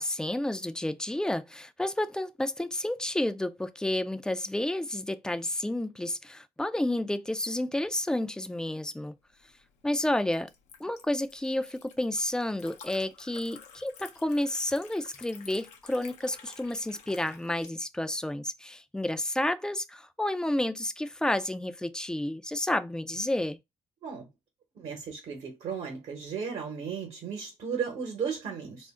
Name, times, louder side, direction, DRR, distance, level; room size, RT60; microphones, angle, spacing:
voice 1, 0.0-9.1 9.8-10.5 10.8-23.6, left 1 dB, 5° left, 0.3 m, -30 dB
Liquid, 9.3-17.7, left 7 dB, 90° left, 0.6 m, -51 dB
voice 2, 24.7-28.9, right 6 dB, 65° right, 1.0 m, -35 dB
2.4 x 2.0 x 3.5 m
cardioid pair, 80°, 11 cm